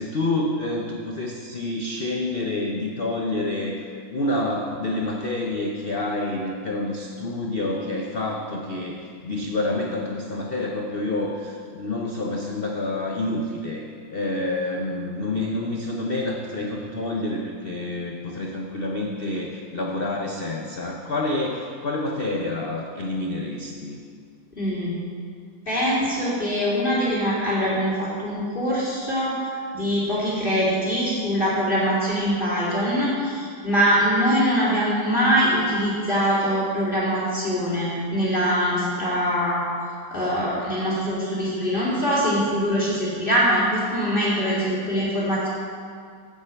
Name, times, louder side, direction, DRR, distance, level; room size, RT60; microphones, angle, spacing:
voice 1, 0.0-24.0, left 2 dB, 75° left, 0 dB, 0.5 m, -28 dB
voice 2, 24.6-25.0 25.7-39.6 40.1-45.5, equal, 25° left, -7 dB, 2.7 m, -23 dB
7.5 x 7.2 x 8.0 m, 2.1 s
omnidirectional pair, 2.1 m